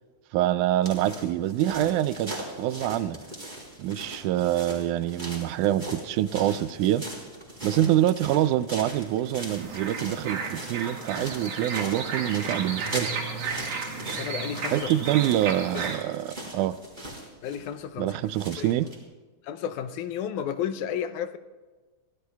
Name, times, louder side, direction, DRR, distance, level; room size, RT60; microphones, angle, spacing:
voice 1, 0.3-3.2 3.8-7.0 7.6-13.1 14.7-16.8 18.0-18.9, right 13 dB, 85° right, 14 dB, 2.0 m, -25 dB
sound 1, 0.8-19.0, right 1 dB, 15° right, 3.5 m, -40 dB
sound 2, 9.6-16.0, right 4 dB, 55° right, 2.6 m, -33 dB
voice 2, 14.1-14.9 15.7-15.9 17.4-18.2 18.6-18.7 19.4-21.4, left 9 dB, 80° left, 11 dB, 2.1 m, -32 dB
24.0 x 17.0 x 2.3 m, 1.3 s
omnidirectional pair, 3.6 m